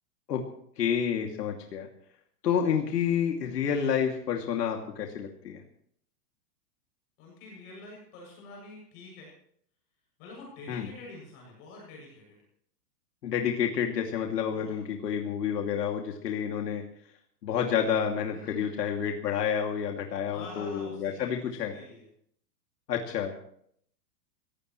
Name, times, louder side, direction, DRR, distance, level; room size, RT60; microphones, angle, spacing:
voice 1, 0.8-1.9 2.4-5.6 10.7-10.9 13.2-16.8 17.4-21.7 22.9-23.4, left 8 dB, 90° left, 1 dB, 2.8 m, -29 dB
voice 2, 7.2-9.3 10.2-12.4 14.5-14.8 18.3-18.9 20.3-22.1, left 3 dB, 30° left, -2 dB, 7.5 m, -47 dB
23.0 x 17.0 x 3.2 m, 0.65 s
supercardioid pair, 180°, 47 cm